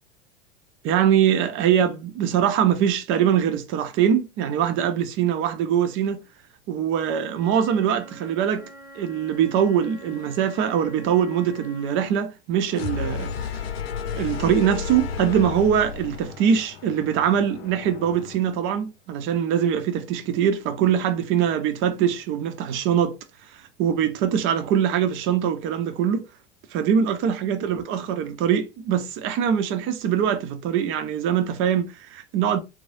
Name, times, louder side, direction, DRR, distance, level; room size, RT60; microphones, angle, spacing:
voice 1, 0.8-6.2 6.7-8.6 9.0-13.3 14.2-23.1 23.8-26.2 26.7-32.6, right 9 dB, 40° right, 0.6 m, -23 dB
Wind instrument woodwind instrument, 7.3-12.1, equal, 30° left, 1.5 m, -45 dB
sound 1, 12.7-18.5, left 6 dB, 75° left, 0.6 m, -33 dB
3.1 x 2.0 x 2.6 m
hypercardioid pair, 95°, 31 cm